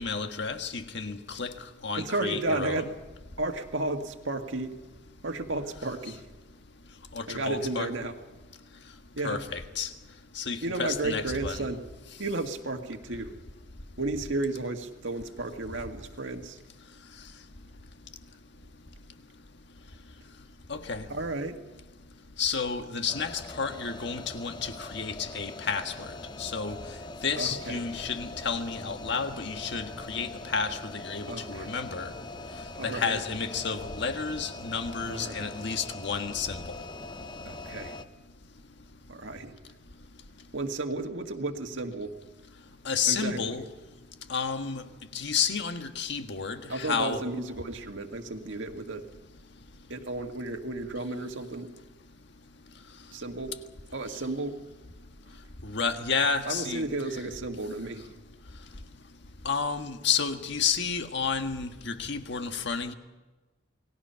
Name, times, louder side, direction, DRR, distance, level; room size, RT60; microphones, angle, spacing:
voice 1, 0.0-1.5 1.8-2.9 7.1-7.9 9.2-9.9 10.4-11.8 20.7-21.1 22.4-26.1 26.4-26.8 27.2-32.1 32.8-36.6 42.9-43.7 44.3-44.8 45.1-47.2 55.6-56.9 59.5-62.9, left 5 dB, 60° left, 6 dB, 1.6 m, -31 dB
voice 2, 1.9-2.9 3.4-4.7 5.2-6.2 7.3-8.1 9.2-9.4 10.6-11.8 12.2-13.3 14.0-16.6 21.1-21.6 27.4-27.8 31.3-31.7 32.7-33.2 35.1-35.5 37.5-37.9 39.1-39.5 40.5-42.1 43.1-43.5 46.7-49.1 49.9-51.7 53.1-53.6 53.9-54.6 56.5-58.1, right 2 dB, 70° right, 5 dB, 1.9 m, -33 dB
sound 1, 23.1-38.0, left 2 dB, 20° left, 0.7 m, -42 dB
29.0 x 20.0 x 5.8 m, 1.2 s
head